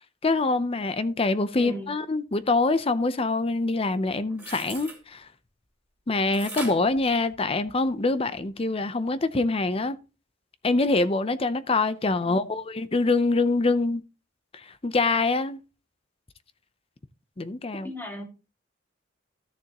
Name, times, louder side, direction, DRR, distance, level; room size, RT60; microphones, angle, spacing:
voice 1, 0.2-5.3 6.1-10.0 10.6-14.0 14.5-15.6 17.4-17.9, left 3 dB, 30° left, 0.6 m, -25 dB
voice 2, 1.5-1.9 12.2-12.6 17.8-18.2, equal, 10° left, 2.1 m, -37 dB
sound 1, 4.3-5.0 6.3-7.9 8.4-8.5, right 2 dB, 10° right, 2.6 m, -39 dB
13.5 x 6.9 x 2.9 m
head